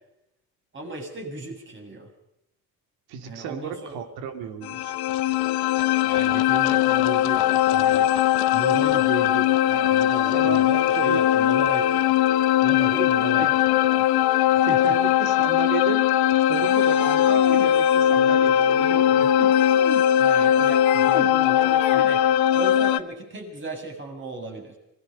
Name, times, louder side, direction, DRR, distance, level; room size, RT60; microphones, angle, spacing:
voice 1, 0.7-2.1 3.3-3.9 6.0-8.1 8.5-12.1 12.6-14.1 14.5-15.0 20.2-22.2 22.5-24.8, right 3 dB, 30° right, 2 dB, 7.3 m, -35 dB
voice 2, 3.1-4.9 10.3-10.6 11.0-11.4 13.4-13.5 14.6-16.1 16.5-19.6, right 8 dB, 80° right, 8 dB, 2.9 m, -33 dB
sound 1, 4.6-23.0, left 11 dB, 75° left, 1.0 m, -20 dB
sound 2, 16.6-17.7 18.7-20.0 20.4-21.3 21.6-22.1, left 12 dB, 55° left, 1.7 m, -31 dB
26.0 x 19.0 x 5.4 m, 0.82 s
cardioid pair, 105°, 37 cm